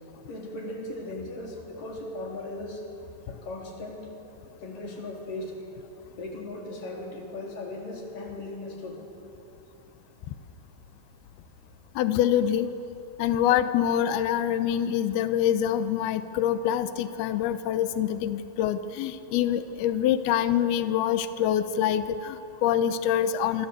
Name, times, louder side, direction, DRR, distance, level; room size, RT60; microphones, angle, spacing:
voice 1, 0.3-2.9 3.3-4.2 4.6-5.7 6.1-9.1, left 2 dB, 45° left, 0 dB, 4.8 m, -37 dB
voice 2, 12.0-12.7 13.2-23.7, left 10 dB, 90° left, 10 dB, 2.2 m, -25 dB
26.5 x 25.5 x 8.2 m, 2.9 s
omnidirectional pair, 5.8 m